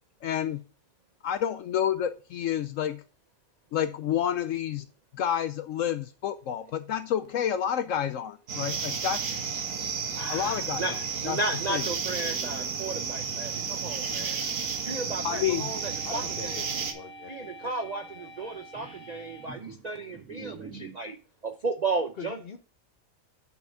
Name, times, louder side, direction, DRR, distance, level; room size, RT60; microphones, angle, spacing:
voice 1, 0.2-0.6 1.2-3.0 3.7-4.9 5.1-9.3 10.3-11.0 11.3-11.4 11.7-11.8 15.2-15.7, left 9 dB, 70° left, 11 dB, 0.9 m, -29 dB
sound 1, 8.5-16.9, right 6 dB, 65° right, 1.4 m, -32 dB
voice 2, 10.1-14.4 14.8-16.8 17.3-21.2 21.4-22.4, right 3 dB, 45° right, 5 dB, 0.5 m, -34 dB
sound 2, 11.9-21.0, right 3 dB, 90° right, 3.0 m, -47 dB
voice 3, 16.0-17.7 18.2-18.7 22.2-22.6, left 5 dB, 45° left, 7 dB, 1.1 m, -44 dB
6.3 x 5.6 x 5.1 m, 0.35 s
omnidirectional pair, 1.5 m